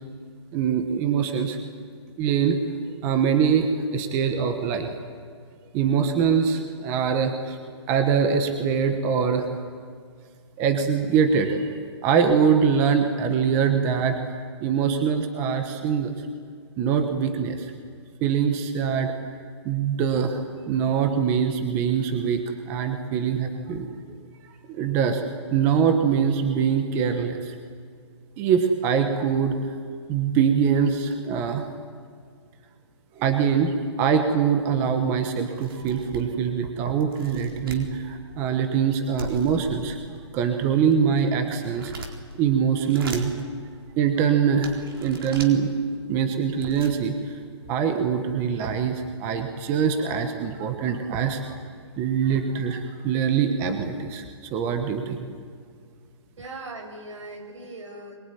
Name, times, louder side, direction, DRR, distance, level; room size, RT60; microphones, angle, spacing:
voice 1, 0.5-1.6 2.2-2.6 3.0-4.9 5.7-7.6 7.9-9.5 10.6-16.1 16.8-17.7 18.2-19.1 19.6-23.9 24.7-25.2 25.5-27.5 28.4-29.6 30.1-31.7 33.2-40.0 40.3-42.1 42.4-43.4 44.0-45.7 46.1-47.2 47.7-51.4 52.0-54.2 54.5-55.2, right 7 dB, 15° right, 6 dB, 1.2 m, -23 dB
sound 1, 34.7-34.8 35.2-35.3 35.6-36.5 37.0-37.9 39.2-40.3 40.8-42.4 42.8-43.4 44.0-44.1 44.6-45.5 46.2-46.3 46.5-47.0, right 2 dB, 50° right, 4.0 m, -38 dB
voice 2, 56.4-58.1, right 2 dB, 85° right, 3 dB, 7.8 m, -39 dB
23.0 x 22.5 x 10.0 m, 2.1 s
hypercardioid pair, 170°, 15 cm